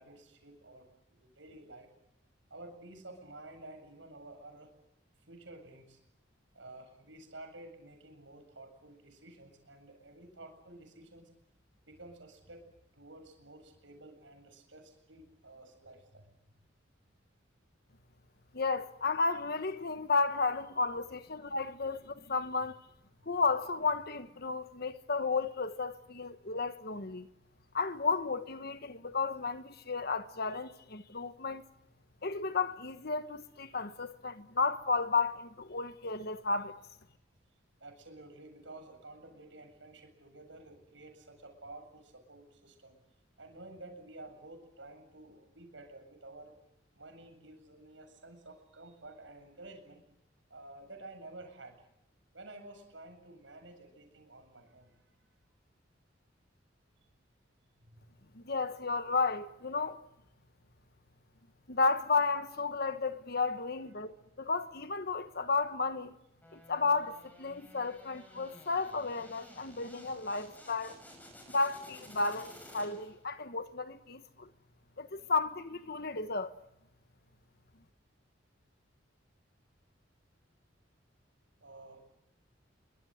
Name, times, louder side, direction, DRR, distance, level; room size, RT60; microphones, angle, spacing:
voice 1, 0.0-1.9 2.5-4.7 5.3-6.0 6.5-11.3 11.9-12.7 12.9-16.3 23.2-23.3 37.8-43.0 43.4-46.5 46.9-50.0 50.5-51.8 52.3-55.2 57.8-58.0 81.6-82.0, right 2 dB, 75° right, 7.8 m, -51 dB
voice 2, 18.5-22.8 23.2-27.3 27.7-31.6 32.2-36.8 58.3-60.0 61.7-66.1 66.5-71.0 71.5-74.5 75.0-76.5, left 4 dB, 55° left, 1.3 m, -33 dB
sound 1, 66.4-73.3, equal, 10° left, 6.5 m, -54 dB
26.5 x 24.5 x 7.9 m
head